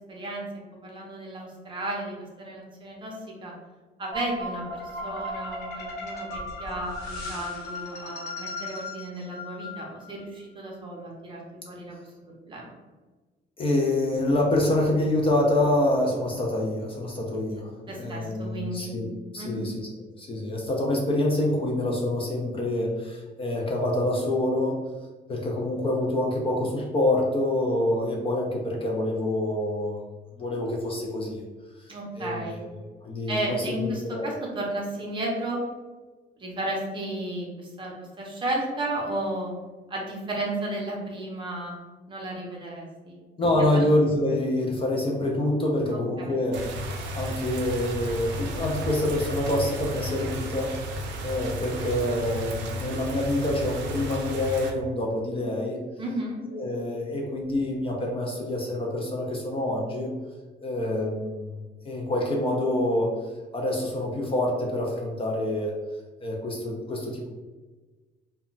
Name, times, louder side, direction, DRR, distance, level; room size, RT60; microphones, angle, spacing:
voice 1, 0.1-3.5 4.0-11.4 11.7-12.7 17.9-18.9 19.4-19.7 31.9-32.6 33.3-35.6 36.4-39.5 39.9-41.7 42.1-43.2 43.6-43.8 45.9-46.4 56.0-56.4, right 1 dB, 25° right, -2 dB, 0.6 m, -33 dB
sound 1, 4.1-10.2, left 2 dB, 55° left, 1.0 m, -36 dB
voice 2, 13.6-19.1 19.3-19.9 20.2-24.8 25.3-30.0 30.4-31.4 31.8-31.9 32.2-32.7 33.0-34.4 43.4-55.8 56.5-60.1 60.6-63.1 63.5-65.7 66.2-67.3, left 1 dB, 30° left, -1 dB, 0.4 m, -26 dB
sound 2, 46.5-54.7, equal, 70° right, 0.5 m, -33 dB
2.1 x 2.1 x 3.7 m, 1.3 s
cardioid pair, 160°, 19 cm